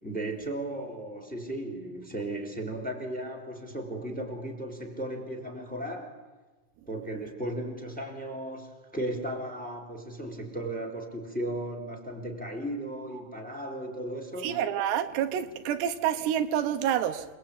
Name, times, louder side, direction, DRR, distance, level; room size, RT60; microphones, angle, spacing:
voice 1, 0.0-6.2 6.9-14.5, right 1 dB, ahead, 5 dB, 3.3 m, -36 dB
voice 2, 14.4-17.3, right 10 dB, 85° right, 8 dB, 3.3 m, -28 dB
28.5 x 20.0 x 8.7 m, 1.2 s
omnidirectional pair, 4.8 m